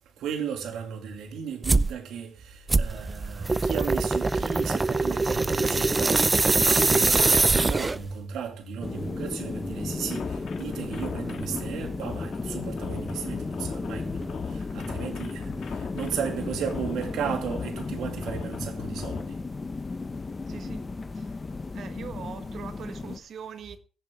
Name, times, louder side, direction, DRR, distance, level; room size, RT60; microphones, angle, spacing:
voice 1, 0.2-6.3 6.6-19.4, right 7 dB, 80° right, 2.5 m, -35 dB
sound 1, 1.6-1.9 2.7-8.1, right 3 dB, 20° right, 0.5 m, -23 dB
sound 2, 8.8-23.2, left 3 dB, 25° left, 0.8 m, -34 dB
sound 3, 9.9-19.2, left 7 dB, 65° left, 2.3 m, -39 dB
voice 2, 20.5-20.9 21.1-21.3 21.7-23.8, right 7 dB, 60° right, 1.5 m, -42 dB
20.5 x 7.6 x 3.6 m
cardioid pair, 90°, 0 cm